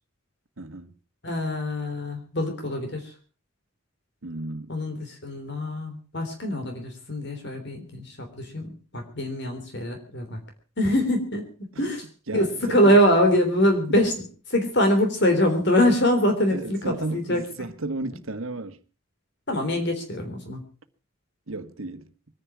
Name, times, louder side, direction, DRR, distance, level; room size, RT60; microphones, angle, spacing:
voice 1, 0.6-0.9 4.2-4.7 11.7-11.8 12.3-12.9 16.5-18.8 21.5-22.1, right 2 dB, 75° right, 1.5 m, -33 dB
voice 2, 1.2-3.1 4.7-10.4 10.8-11.5 11.8-12.1 12.3-17.4 19.5-20.6, equal, 55° left, 3.5 m, -24 dB
22.5 x 10.5 x 6.1 m
head